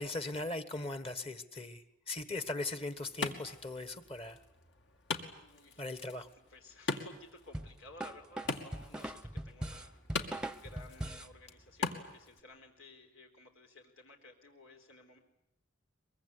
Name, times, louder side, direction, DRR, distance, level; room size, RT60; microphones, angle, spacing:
voice 1, 0.0-4.4 5.8-6.3, left 2 dB, 30° left, 12 dB, 1.5 m, -39 dB
Wood, 2.4-12.4, left 3 dB, 60° left, 2.6 m, -43 dB
voice 2, 5.4-15.2, left 2 dB, 85° left, 4 dB, 4.0 m, -56 dB
sound 1, 7.5-11.3, right 1 dB, 5° right, 0.9 m, -41 dB
23.5 x 23.0 x 9.8 m, 0.82 s
head